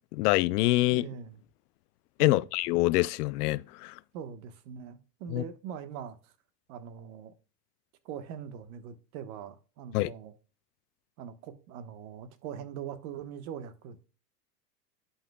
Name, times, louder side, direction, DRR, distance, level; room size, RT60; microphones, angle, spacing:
voice 1, 0.1-1.1 2.2-3.9 5.3-5.4 9.9-10.1, left 19 dB, 75° left, 0.6 m, -25 dB
voice 2, 0.9-1.4 2.2-2.5 4.1-6.3 6.7-7.3 8.0-10.3 11.2-14.1, right 8 dB, 60° right, 1.4 m, -42 dB
11.5 x 5.7 x 2.3 m
supercardioid pair, 115°, 47 cm